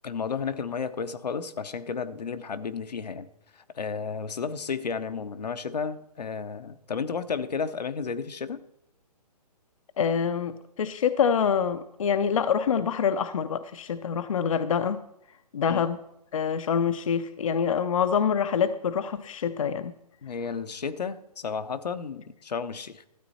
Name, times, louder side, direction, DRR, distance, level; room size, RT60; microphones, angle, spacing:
voice 1, 0.0-3.3 3.7-8.6 15.7-15.8 20.2-23.1, left 5 dB, 80° left, 10 dB, 0.9 m, -32 dB
voice 2, 10.0-15.0 15.5-16.0 16.3-19.9, left 7 dB, 55° left, 11 dB, 0.5 m, -26 dB
12.5 x 8.7 x 4.1 m, 0.85 s
hypercardioid pair, 165°, 21 cm